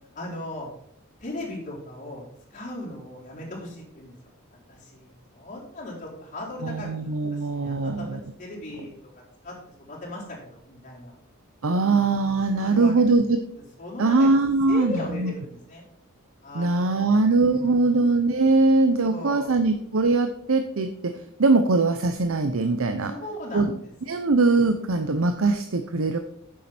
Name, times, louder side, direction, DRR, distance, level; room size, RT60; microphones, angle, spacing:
voice 1, 0.1-0.7 1.2-2.2 2.5-4.1 4.5-9.0 9.4-11.2 11.7-12.1 12.6-13.2 13.8-14.3 14.7-15.8 16.4-18.0 19.0-19.6 23.1-23.9 24.2-24.3, left 1 dB, 40° left, -5 dB, 4.1 m, -38 dB
voice 2, 6.6-8.2 11.6-13.4 14.0-15.3 16.5-21.1 21.4-23.1 23.5-23.7 24.1-26.2, right 3 dB, 70° right, 8 dB, 0.7 m, -21 dB
9.4 x 7.6 x 4.4 m, 0.73 s
head